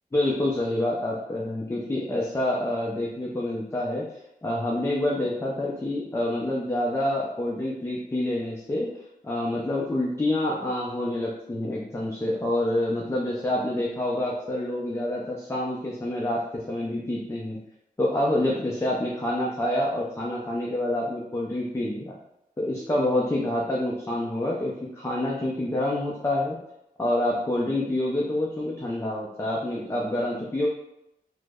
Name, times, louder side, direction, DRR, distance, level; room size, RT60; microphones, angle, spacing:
voice 1, 0.1-4.1 4.4-8.9 9.2-17.6 18.0-22.2 22.6-26.6 27.0-30.7, left 1 dB, 15° left, -3 dB, 0.4 m, -27 dB
3.1 x 2.0 x 3.5 m, 0.85 s
wide cardioid pair, 105°, 15 cm